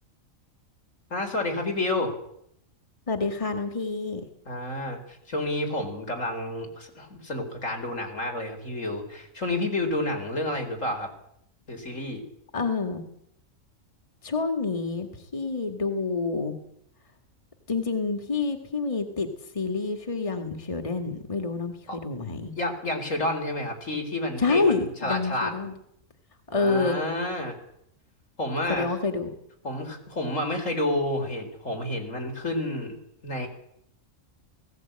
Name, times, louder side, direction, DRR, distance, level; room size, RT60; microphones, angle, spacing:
voice 1, 1.1-2.1 4.5-11.1 11.7-12.2 21.9-22.0 22.6-25.5 26.5-27.6 28.4-28.9 29.6-32.9 33.2-33.5, left 1 dB, 70° left, 4 dB, 4.7 m, -30 dB
voice 2, 3.1-4.2 12.5-13.0 14.2-16.5 17.7-19.3 19.5-22.5 24.4-25.7 26.5-27.0 28.7-29.3, left 4 dB, 25° left, 6 dB, 2.1 m, -27 dB
19.0 x 17.5 x 8.9 m, 0.74 s
omnidirectional pair, 1.4 m